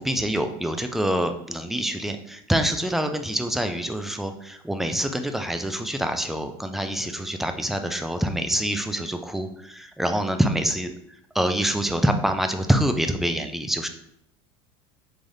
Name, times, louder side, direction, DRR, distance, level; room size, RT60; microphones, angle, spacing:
voice 1, 0.0-10.9 11.3-13.9, right 1 dB, ahead, 6 dB, 0.3 m, -26 dB
3.6 x 3.2 x 2.6 m, 0.73 s
supercardioid pair, 105°, 14 cm